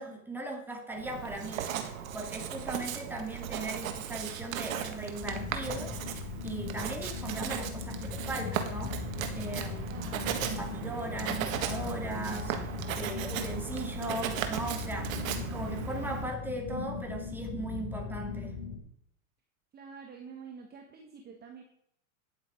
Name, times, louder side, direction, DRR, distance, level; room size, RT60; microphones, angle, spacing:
voice 1, 0.0-1.7 2.1-5.9 6.4-9.0 9.4-10.0 10.4-12.5 12.9-15.2 15.5-18.6, right 1 dB, 5° right, 2 dB, 2.1 m, -38 dB
Writing, 1.0-16.3, right 8 dB, 70° right, 1.7 m, -37 dB
sound 1, 5.2-18.8, left 4 dB, 25° left, 2.9 m, -39 dB
voice 2, 9.9-10.2 19.7-21.6, right 6 dB, 25° right, 3 dB, 1.2 m, -47 dB
10.0 x 7.7 x 5.0 m, 0.70 s
hypercardioid pair, 130°, 42 cm